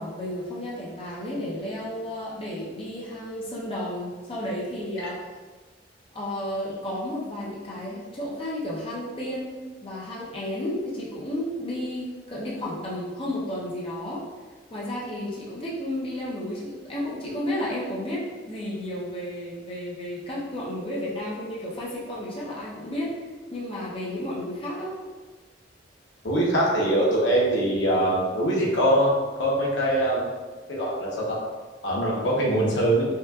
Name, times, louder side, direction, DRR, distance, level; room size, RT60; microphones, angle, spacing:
voice 1, 0.0-5.2 6.1-14.3 14.7-23.2 23.5-24.9, left 1 dB, 30° left, -6 dB, 0.7 m, -32 dB
voice 2, 26.2-30.2 30.7-31.4 31.8-33.1, right 1 dB, 80° left, -4 dB, 1.0 m, -23 dB
5.4 x 2.4 x 2.4 m, 1.3 s
head